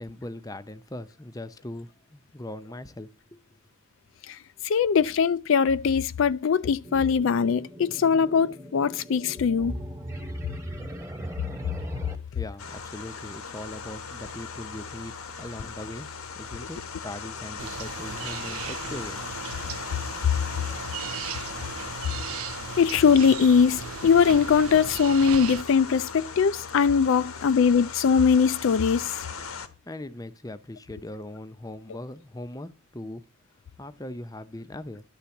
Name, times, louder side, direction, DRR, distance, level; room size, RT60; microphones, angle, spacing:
voice 1, 0.0-3.4 12.3-15.1 15.4-16.1 16.3-19.3 29.6-33.3 33.8-35.0, left 1 dB, 15° left, 0.6 m, -40 dB
voice 2, 4.6-9.7 22.8-29.3, left 6 dB, 65° left, 0.4 m, -21 dB
sound 1, 6.8-12.2, equal, 15° right, 1.2 m, -38 dB
sound 2, 12.6-29.7, left 5 dB, 90° left, 1.2 m, -38 dB
sound 3, 17.6-25.6, right 9 dB, 75° right, 0.4 m, -37 dB
11.5 x 3.9 x 7.0 m
head